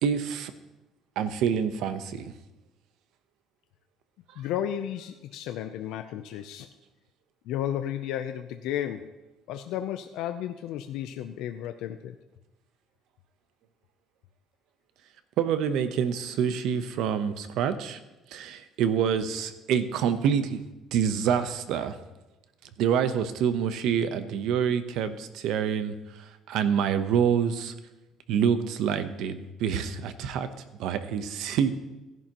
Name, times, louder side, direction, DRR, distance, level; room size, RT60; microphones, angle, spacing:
voice 1, 0.0-0.5 1.2-2.2 15.4-18.0 18.3-20.6 20.9-22.0 22.8-25.9 26.5-27.7 28.3-30.5 30.8-31.7, right 8 dB, 70° right, 11 dB, 0.9 m, -26 dB
voice 2, 4.4-6.7 7.5-9.0 9.5-12.1, left 11 dB, 75° left, 7 dB, 0.6 m, -33 dB
16.0 x 10.5 x 3.0 m, 1.0 s
cardioid pair, 135°, 0 cm